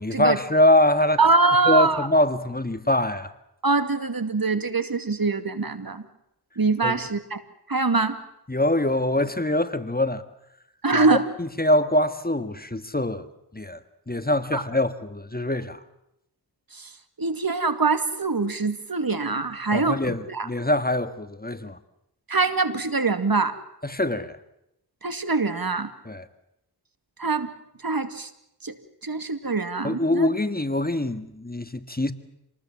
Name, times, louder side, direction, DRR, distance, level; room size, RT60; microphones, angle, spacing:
voice 1, 0.0-1.2 1.7-3.3 6.8-7.0 8.5-10.2 10.9-13.3 13.5-13.8 14.1-15.8 19.7-21.8 23.8-24.4 26.1-26.3 29.8-32.1, left 1 dB, 20° left, 1.7 m, -23 dB
voice 2, 1.2-2.1 3.6-6.0 6.6-7.4 7.7-8.2 10.8-11.2 14.5-14.6 16.7-16.9 17.2-20.5 22.3-23.6 25.0-25.9 27.2-27.5 27.8-28.3 28.6-28.8 29.0-30.3, right 3 dB, 55° right, 2.4 m, -23 dB
27.5 x 20.0 x 7.6 m
cardioid pair, 40°, 41 cm